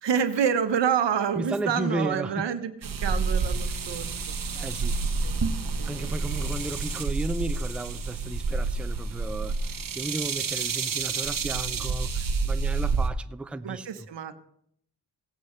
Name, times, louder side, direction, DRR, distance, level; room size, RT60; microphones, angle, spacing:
voice 1, 0.0-4.3 5.2-5.3 5.8-6.6 13.6-14.4, right 7 dB, 80° right, 1.0 m, -28 dB
voice 2, 1.4-2.5 4.1-4.3 4.5-5.0 5.9-9.5 9.9-13.9, right 2 dB, 5° right, 0.4 m, -34 dB
sound 1, 2.8-13.1, right 4 dB, 50° right, 1.0 m, -29 dB
17.5 x 8.4 x 3.2 m
cardioid pair, 65°, 42 cm